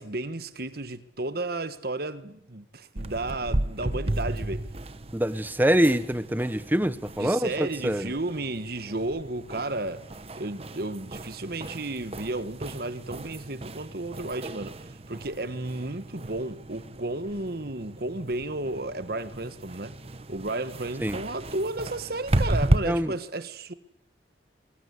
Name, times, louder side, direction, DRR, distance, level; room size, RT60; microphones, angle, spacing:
voice 1, 0.0-4.6 7.2-10.0 10.4-20.0 20.3-23.7, right 2 dB, 55° right, 1.5 m, -33 dB
sound 1, 3.0-22.8, right 1 dB, 30° right, 1.0 m, -34 dB
voice 2, 5.1-8.1 21.0-21.2 22.8-23.1, equal, 10° right, 1.0 m, -25 dB
26.5 x 22.5 x 8.2 m
head